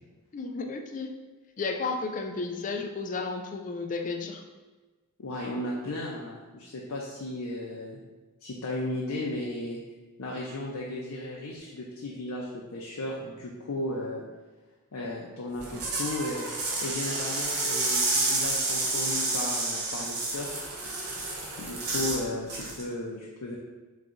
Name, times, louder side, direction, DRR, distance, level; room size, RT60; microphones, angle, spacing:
voice 1, 0.3-1.1 1.6-4.4, left 4 dB, 35° left, 4 dB, 0.4 m, -33 dB
voice 2, 5.2-8.0 8.4-9.8 10.2-14.2 14.9-16.5 16.8-20.6 21.6-23.6, left 1 dB, 85° left, -3 dB, 0.6 m, -35 dB
sound 1, 15.6-22.2 22.5-22.8, right 2 dB, 90° right, 1.0 m, -30 dB
3.5 x 3.1 x 3.8 m, 1.3 s
head